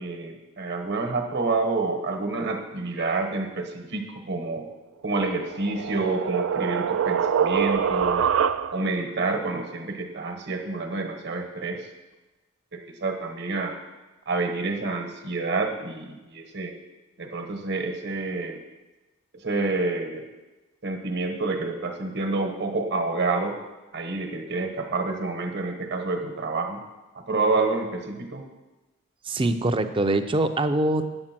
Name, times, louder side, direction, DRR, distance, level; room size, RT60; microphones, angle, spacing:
voice 1, 0.0-4.7 5.0-8.3 8.7-11.9 12.7-13.8 14.3-16.7 17.2-18.6 19.3-20.2 20.8-23.6 23.9-26.9 27.1-28.4, right 3 dB, 55° right, 4 dB, 1.2 m, -28 dB
sound 1, 5.2-9.0, right 7 dB, 70° right, 0.4 m, -25 dB
voice 2, 29.2-31.0, right 2 dB, 25° right, 9 dB, 0.5 m, -23 dB
8.8 x 6.9 x 5.9 m, 1.1 s
head